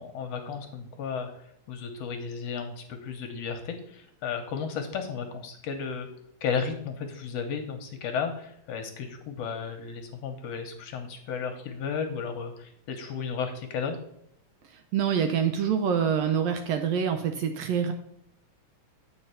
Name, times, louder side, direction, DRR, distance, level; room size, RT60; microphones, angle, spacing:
voice 1, 0.0-6.1 6.4-14.0, left 6 dB, 70° left, 5 dB, 1.8 m, -34 dB
voice 2, 14.6-17.9, right 7 dB, 75° right, 6 dB, 1.6 m, -26 dB
8.4 x 4.8 x 5.6 m, 0.74 s
omnidirectional pair, 3.4 m